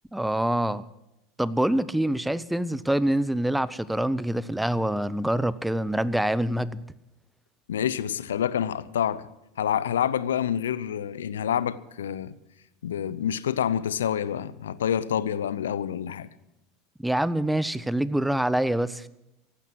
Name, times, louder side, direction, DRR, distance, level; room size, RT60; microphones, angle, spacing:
voice 1, 0.1-0.8 1.4-6.8 17.0-19.1, right 1 dB, 5° right, 0.7 m, -25 dB
voice 2, 7.7-9.2 9.6-12.3 12.8-16.3, left 9 dB, 80° left, 0.6 m, -27 dB
15.5 x 12.0 x 6.3 m
hypercardioid pair, 85°, 0 cm